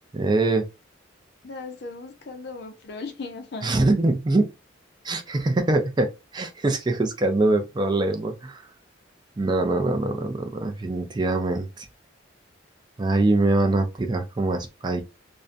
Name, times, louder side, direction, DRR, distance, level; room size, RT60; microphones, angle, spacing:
voice 1, 0.1-0.7 3.6-4.5 5.0-8.7 9.4-11.9 13.0-15.0, right 2 dB, 25° right, 0.4 m, -23 dB
voice 2, 1.4-3.7, left 3 dB, 60° left, 0.5 m, -37 dB
2.5 x 2.1 x 2.5 m
head